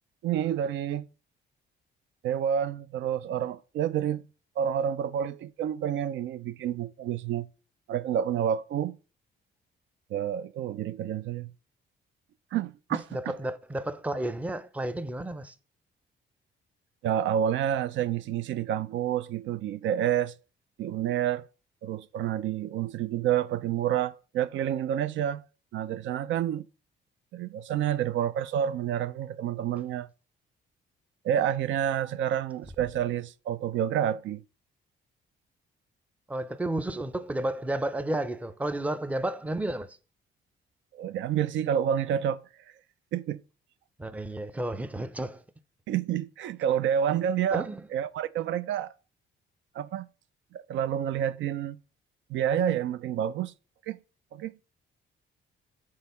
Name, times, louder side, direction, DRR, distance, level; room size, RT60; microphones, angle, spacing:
voice 1, 0.2-1.1 2.2-4.2 4.6-7.5 7.9-9.0 10.1-11.5 12.5-13.0 17.0-20.3 20.8-21.4 21.8-25.4 25.7-26.6 27.3-30.1 31.2-34.4 40.9-42.4 43.1-43.4 45.9-47.7 47.9-48.9 49.7-50.1 50.5-51.8 52.3-53.5 53.9-54.0 54.3-54.6, right 9 dB, 75° right, 0.4 m, -29 dB
voice 2, 12.9-15.5 36.3-40.0 44.0-45.4 47.5-47.9, right 1 dB, 5° right, 0.5 m, -32 dB
6.2 x 3.8 x 5.4 m
cardioid pair, 100°, 20 cm